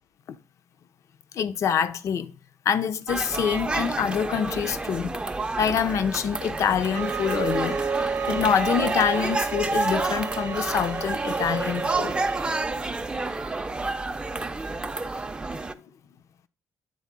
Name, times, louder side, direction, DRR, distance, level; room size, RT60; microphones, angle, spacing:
voice 1, 1.3-2.3 2.7-5.1 5.6-7.8 8.3-12.1, left 7 dB, 65° left, 0.5 m, -25 dB
sound 1, 3.1-15.7, right 3 dB, 15° right, 0.4 m, -30 dB
sound 2, 6.9-12.7, right 5 dB, 50° right, 0.7 m, -31 dB
8.4 x 3.7 x 3.6 m
cardioid pair, 95°, 6 cm